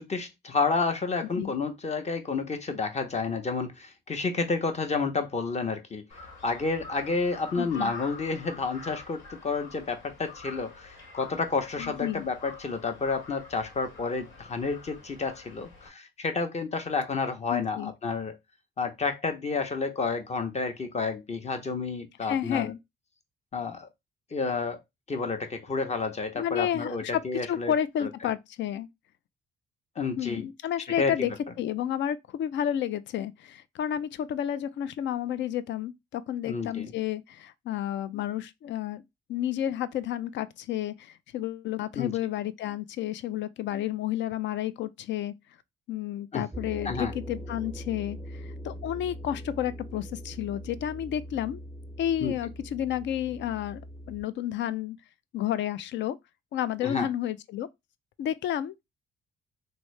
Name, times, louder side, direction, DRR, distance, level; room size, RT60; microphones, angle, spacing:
voice 1, 0.0-6.0 6.4-18.4 18.8-22.7 23.5-23.9 24.3-24.8 25.1-27.7 28.0-28.1 30.0-30.5 31.0-31.3 36.5-36.9 42.0-42.1 46.3-46.5 46.8-47.1 52.2-52.3 56.8-57.1, left 4 dB, 35° left, 0.8 m, -30 dB
Crow, 6.1-15.9, left 4 dB, 85° left, 1.9 m, -46 dB
voice 2, 7.6-7.9 11.8-12.2 17.5-17.9 22.3-22.8 26.4-27.2 27.5-28.9 30.2-31.3 31.6-39.0 39.3-45.3 45.9-51.6 52.0-53.8 54.1-55.0 55.3-56.2 56.5-57.7 58.2-58.8, left 11 dB, 65° left, 0.4 m, -31 dB
sound 1, 46.5-54.2, equal, 5° right, 0.5 m, -41 dB
3.1 x 2.7 x 3.2 m
cardioid pair, 90°, 20 cm